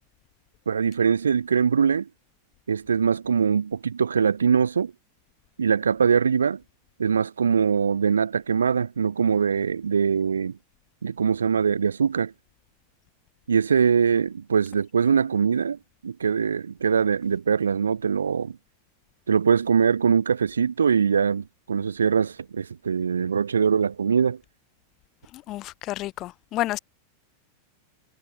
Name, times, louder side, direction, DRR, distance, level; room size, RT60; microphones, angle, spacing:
voice 1, 0.7-2.1 2.7-4.9 5.6-6.6 7.0-10.6 11.0-12.3 13.5-18.6 19.3-24.4, right 6 dB, 70° right, 5.3 m, -22 dB
voice 2, 25.3-26.8, left 16 dB, 35° left, 4.5 m, -30 dB
figure-of-eight pair, 90°, 0 cm